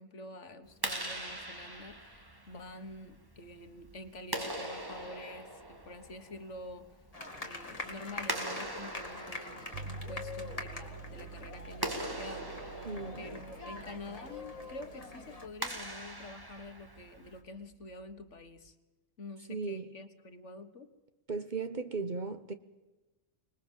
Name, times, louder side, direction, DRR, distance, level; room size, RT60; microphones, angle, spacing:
voice 1, 0.0-7.0 7.4-12.6 13.2-18.8 19.2-20.9, left 2 dB, 65° left, 1.8 m, -47 dB
Clapping, 0.7-17.4, right 1 dB, 15° right, 2.0 m, -42 dB
sound 1, 7.1-15.5, left 3 dB, 25° left, 2.4 m, -45 dB
sound 2, 9.7-18.7, right 5 dB, 60° right, 1.3 m, -49 dB
voice 2, 12.8-13.3 19.5-19.9 21.3-22.5, right 4 dB, 40° right, 1.0 m, -36 dB
25.5 x 20.5 x 7.4 m
omnidirectional pair, 1.4 m